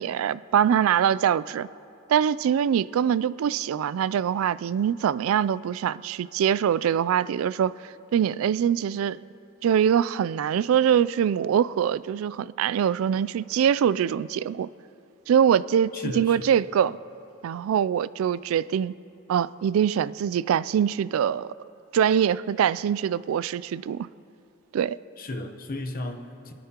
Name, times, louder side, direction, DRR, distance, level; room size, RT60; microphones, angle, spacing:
voice 1, 0.0-1.7 2.1-7.7 8.1-9.2 9.6-14.7 15.3-17.0 17.4-18.9 19.3-21.5 21.9-24.1 24.7-25.0, right 8 dB, 80° right, 0.3 m, -23 dB
voice 2, 15.9-16.5 25.2-26.5, left 2 dB, 45° left, 0.8 m, -34 dB
26.0 x 9.5 x 2.9 m
head